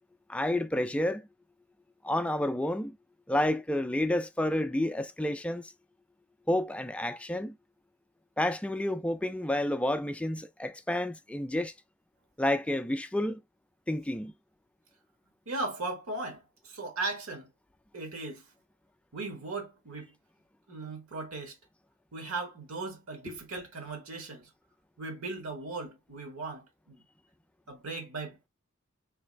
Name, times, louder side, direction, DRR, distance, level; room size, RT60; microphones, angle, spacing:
voice 1, 0.3-1.3 2.0-3.0 3.3-5.7 6.5-7.6 8.4-11.7 12.4-13.4 13.9-14.3, left 1 dB, 5° left, 0.3 m, -30 dB
voice 2, 15.5-17.5 17.9-18.5 19.1-20.1 20.7-21.6 22.1-24.5 25.0-27.0 27.7-28.5, right 3 dB, 70° right, 1.4 m, -38 dB
3.3 x 3.1 x 3.2 m
head